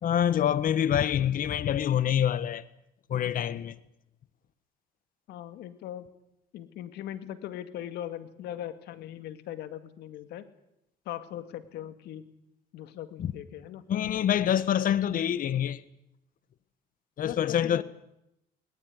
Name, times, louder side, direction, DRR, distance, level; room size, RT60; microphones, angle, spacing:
voice 1, 0.0-2.6 3.1-3.7 13.2-13.3 13.9-15.8 17.2-17.8, left 10 dB, 55° left, 1.5 m, -26 dB
voice 2, 5.3-6.1 6.5-10.4 11.1-12.2 12.7-13.9 17.2-17.8, left 11 dB, 80° left, 2.4 m, -40 dB
21.0 x 20.0 x 9.8 m
cardioid pair, 110°, 17 cm